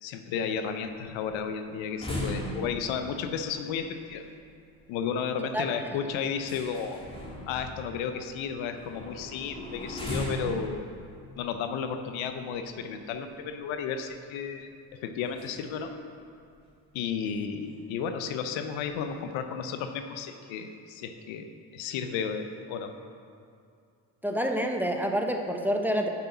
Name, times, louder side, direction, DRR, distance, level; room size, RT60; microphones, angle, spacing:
voice 1, 0.0-4.3 4.9-7.0 7.5-10.9 11.4-15.9 16.9-22.9, left 6 dB, 75° left, 8 dB, 0.9 m, -33 dB
sound 1, 0.6-13.2 13.6-13.7 14.0-14.3 15.2-15.8 16.1-16.2 16.6-16.7 17.3-17.4 17.6-18.0 18.3-19.1, equal, 10° left, 2.1 m, -39 dB
voice 2, 24.2-26.1, equal, 5° right, 3 dB, 1.0 m, -27 dB
8.1 x 7.0 x 6.0 m, 2.3 s
hypercardioid pair, 60°, 48 cm